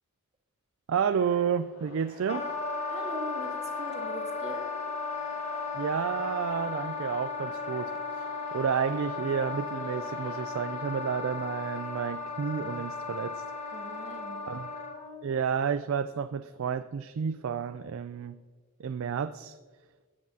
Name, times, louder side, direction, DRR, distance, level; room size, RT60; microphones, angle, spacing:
sound 1, 0.9-11.4, left 1 dB, 90° left, 2.9 m, -52 dB
voice 1, 0.9-2.5 5.7-13.4 14.5-14.8 15.2-18.4 18.8-19.6, right 7 dB, 65° right, 11 dB, 0.3 m, -31 dB
Wind instrument woodwind instrument, 2.3-15.2, left 4 dB, 30° left, 1.2 m, -35 dB
voice 2, 2.9-4.8 13.7-14.4, right 2 dB, 30° right, 2 dB, 1.5 m, -42 dB
16.5 x 9.5 x 2.8 m, 1.4 s
head